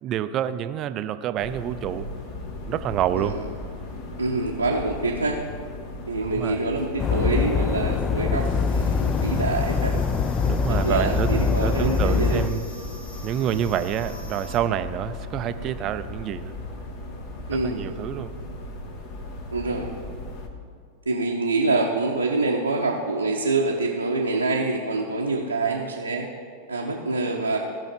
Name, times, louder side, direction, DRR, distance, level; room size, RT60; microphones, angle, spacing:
voice 1, 0.0-2.1 2.7-3.4 6.3-6.6 10.2-12.6 13.2-16.5 17.5-18.3, right 10 dB, 35° right, 12 dB, 0.4 m, -28 dB
sound 1, 1.4-20.5, left 2 dB, 45° left, 1.3 m, -36 dB
voice 2, 4.2-5.4 6.1-10.0 10.7-12.4 17.5-17.9 19.5-19.9 21.1-26.3 26.7-27.6, right 3 dB, 80° right, -2 dB, 0.8 m, -26 dB
sound 2, 7.0-12.5, left 5 dB, 20° left, 0.5 m, -23 dB
sound 3, 8.3-14.6, right 1 dB, 65° left, 2.0 m, -43 dB
16.5 x 5.6 x 5.2 m, 2.1 s
figure-of-eight pair, 90°, 0 cm